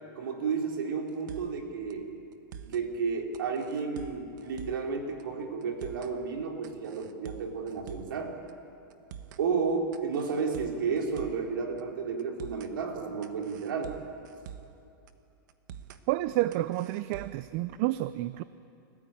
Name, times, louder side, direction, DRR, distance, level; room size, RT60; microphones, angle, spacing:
voice 1, 0.2-2.1 2.6-8.4 9.4-14.0, right 5 dB, 85° right, 2 dB, 3.8 m, -32 dB
sound 1, 1.1-1.6 1.9-2.0 2.3-2.9 3.3-4.9 5.2-5.3 5.6-6.2 6.6-8.2 8.5-8.6 8.9-9.4 9.9-11.5 11.8-11.9 12.2-12.7 13.2-14.8 15.1-15.2 15.5-16.0 16.5-17.5, right 9 dB, 60° right, 1.4 m, -46 dB
voice 2, 16.1-18.4, right 16 dB, 40° right, 15 dB, 0.5 m, -29 dB
29.5 x 15.0 x 8.9 m, 2.7 s
supercardioid pair, 150°, 11 cm